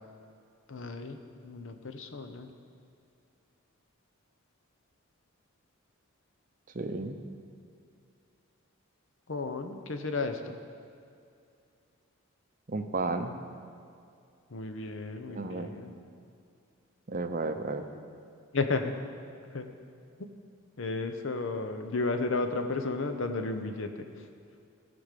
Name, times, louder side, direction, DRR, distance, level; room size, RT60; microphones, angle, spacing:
voice 1, 0.7-2.5 9.3-10.6 14.5-15.9 18.5-18.9 19.5-19.7 20.8-24.2, left 3 dB, 60° left, 7 dB, 0.7 m, -33 dB
voice 2, 6.7-7.2 12.7-13.4 15.3-15.7 17.1-17.9, right 3 dB, 40° right, 7 dB, 0.6 m, -33 dB
14.0 x 5.1 x 6.6 m, 2.4 s
head